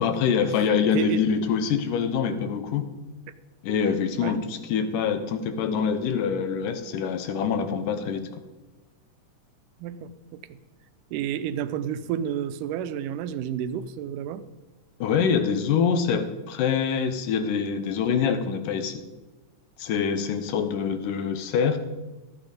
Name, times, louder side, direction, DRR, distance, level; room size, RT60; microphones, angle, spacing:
voice 1, 0.0-2.8 3.6-8.2 15.0-19.0 19.8-21.8, left 6 dB, 85° left, 9 dB, 2.5 m, -25 dB
voice 2, 9.8-10.4 11.1-14.4, right 9 dB, 85° right, 11 dB, 2.2 m, -30 dB
13.0 x 8.6 x 5.1 m, 1.2 s
omnidirectional pair, 3.7 m